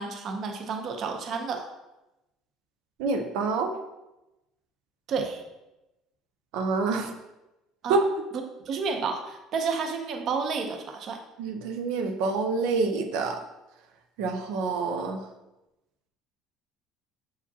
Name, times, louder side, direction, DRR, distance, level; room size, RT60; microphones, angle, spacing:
voice 1, 0.0-1.7 5.1-5.4 6.9-7.1 7.8-8.0 8.7-11.2, right 5 dB, 40° right, 4 dB, 0.7 m, -31 dB
voice 2, 3.0-3.7 6.5-7.1 7.9-8.0 11.4-13.4 14.2-15.2, right 4 dB, 80° right, 4 dB, 0.6 m, -27 dB
7.0 x 4.8 x 2.8 m, 0.97 s
cardioid pair, 155°, 0 cm